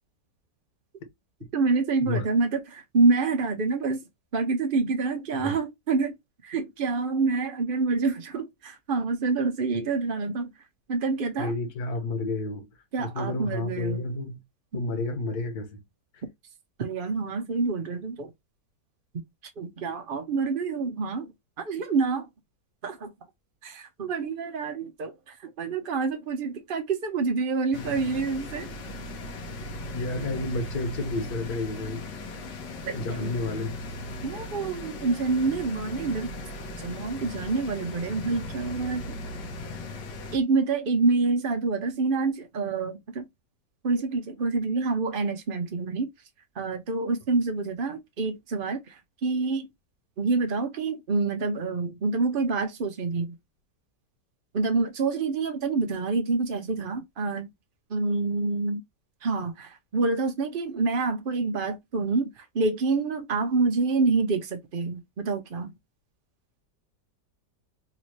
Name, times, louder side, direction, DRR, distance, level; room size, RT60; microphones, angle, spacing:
voice 1, 1.5-4.0 4.3-6.1 6.4-10.5 10.9-11.5 12.9-14.0 16.8-18.3 19.6-21.3 21.6-22.3 22.8-23.1 23.6-28.7 32.9-33.3 34.2-36.3 36.8-39.0 40.3-43.3 43.8-46.1 46.6-49.7 50.2-53.3 54.5-57.5 57.9-58.8 59.2-65.7, right 4 dB, 60° right, 0.5 m, -27 dB
voice 2, 11.4-12.7 13.0-14.4 14.7-15.8 16.1-16.2 29.9-32.0 32.9-33.7, left 2 dB, 65° left, 1.6 m, -30 dB
sound 1, 27.7-40.4, left 2 dB, 80° left, 1.6 m, -38 dB
4.0 x 2.7 x 2.9 m
omnidirectional pair, 1.9 m